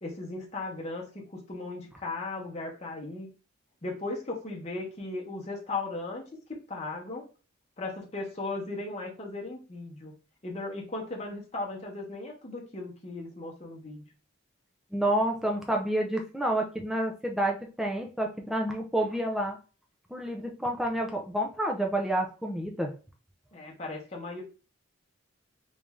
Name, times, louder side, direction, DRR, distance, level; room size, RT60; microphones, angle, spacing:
voice 1, 0.0-3.3 3.8-7.3 7.8-10.1 10.4-14.0 23.5-24.4, left 2 dB, 30° left, -1 dB, 0.9 m, -37 dB
voice 2, 14.9-19.6 20.1-22.9, right 1 dB, ahead, 1 dB, 0.4 m, -29 dB
3.1 x 2.6 x 3.5 m, 0.35 s
head